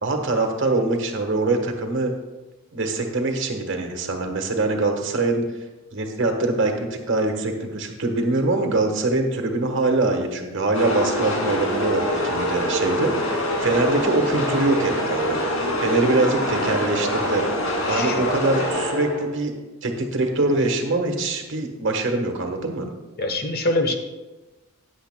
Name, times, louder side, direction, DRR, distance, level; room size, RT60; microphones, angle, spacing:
voice 1, 0.0-2.1 2.7-5.5 5.9-13.1 13.6-15.4 15.8-17.5 17.9-19.5 19.8-22.9, right 2 dB, 60° right, 4 dB, 1.3 m, -23 dB
sound 1, 10.7-19.4, equal, 80° left, 2.3 m, -25 dB
voice 2, 17.9-18.2 23.2-24.0, left 2 dB, 45° left, 5 dB, 1.0 m, -24 dB
15.0 x 9.8 x 2.2 m, 1.1 s
head